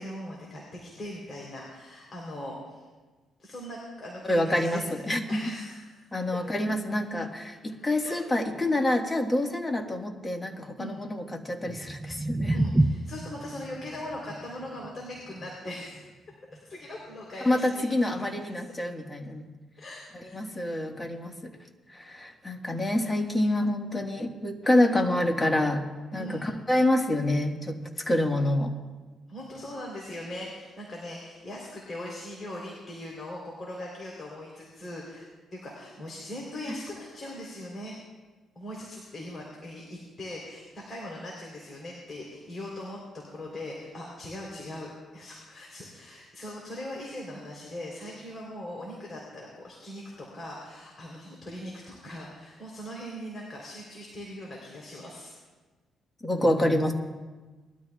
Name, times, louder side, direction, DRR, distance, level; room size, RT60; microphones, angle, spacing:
voice 1, 0.0-2.8 3.4-4.9 5.3-6.1 8.0-8.2 10.8-11.0 12.5-16.1 16.7-18.1 18.4-18.5 19.8-20.7 26.1-26.4 29.3-35.3 35.5-38.0 38.6-55.3, left 1 dB, 35° left, -3 dB, 3.5 m, -40 dB
voice 2, 4.3-4.8 5.1-5.4 6.1-12.6 17.4-19.5 20.3-21.5 21.9-25.8 26.1-28.7 36.7-36.8 56.2-56.9, left 1 dB, 20° left, 3 dB, 1.5 m, -27 dB
sound 1, 11.6-17.7, right 1 dB, 10° right, 0.5 m, -31 dB
21.0 x 12.5 x 2.3 m, 1.3 s
cardioid pair, 90°, 0 cm